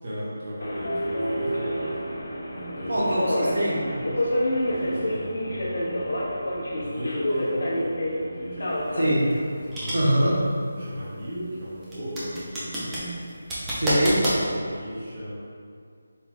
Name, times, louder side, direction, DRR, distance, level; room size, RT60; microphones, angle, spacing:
voice 1, 0.0-1.9 2.5-3.2 4.6-6.0 6.7-9.0 9.7-10.2 10.8-13.2 14.3-15.4, equal, 25° right, -10 dB, 0.8 m, -36 dB
Subway metro underground, 0.6-10.3, equal, 60° left, 0.8 m, -29 dB
voice 2, 2.9-4.0 9.0-9.3 9.9-10.3 13.7-14.2, right 1 dB, 80° right, -5 dB, 1.2 m, -23 dB
sound 1, 8.7-14.4, equal, 5° right, 0.4 m, -30 dB
4.4 x 3.8 x 2.5 m, 2.2 s
figure-of-eight pair, 175°, 0 cm